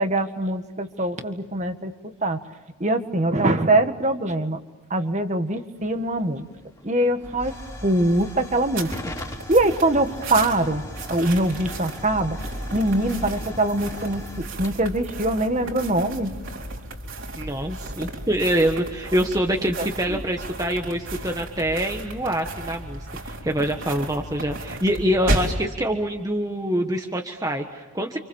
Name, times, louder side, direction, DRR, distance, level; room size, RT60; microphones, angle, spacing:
voice 1, 0.0-1.9 2.2-2.4 2.8-4.6 4.9-6.5 6.8-7.5 7.8-8.9 9.5-10.8 11.1-12.4 12.7-16.3 19.8-20.2, right 1 dB, 30° right, 7 dB, 1.8 m, -23 dB
Hiss / Fire / Tick, 5.8-16.2, left 1 dB, 15° left, 3.4 m, -40 dB
sound 1, 7.2-25.6, right 1 dB, 55° right, 4.2 m, -34 dB
voice 2, 17.4-28.2, equal, 15° right, 3 dB, 1.4 m, -25 dB
30.0 x 27.5 x 7.2 m, 1.1 s
head